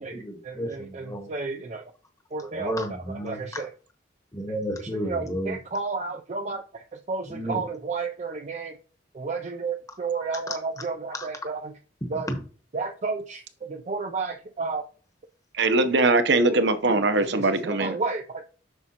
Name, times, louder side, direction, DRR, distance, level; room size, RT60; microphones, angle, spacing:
voice 1, 0.0-1.3 2.4-3.7 4.3-5.6 7.3-7.7 9.9-10.0 10.5-10.8 11.1-11.3 12.3-12.4, equal, 15° left, 1.1 m, -33 dB
voice 2, 0.9-1.8 2.3-2.7 3.3-3.7 5.1-6.8 7.1-8.7 9.2-11.6 12.1-12.3 12.7-13.4 13.7-14.8 17.5-18.4, right 4 dB, 35° right, 0.4 m, -31 dB
voice 3, 15.5-18.0, right 2 dB, 60° right, 0.8 m, -21 dB
7.9 x 6.1 x 2.9 m
head